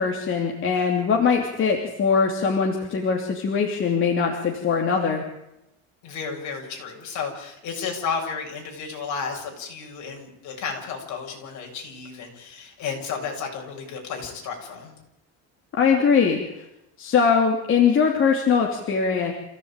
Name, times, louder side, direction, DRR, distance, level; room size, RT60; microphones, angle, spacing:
voice 1, 0.0-5.2 15.7-16.4 17.0-19.3, left 6 dB, 30° left, 1 dB, 3.0 m, -21 dB
voice 2, 6.0-14.9, left 5 dB, 50° left, 1 dB, 7.5 m, -32 dB
27.5 x 16.5 x 9.0 m, 0.88 s
cardioid pair, 175°, 38 cm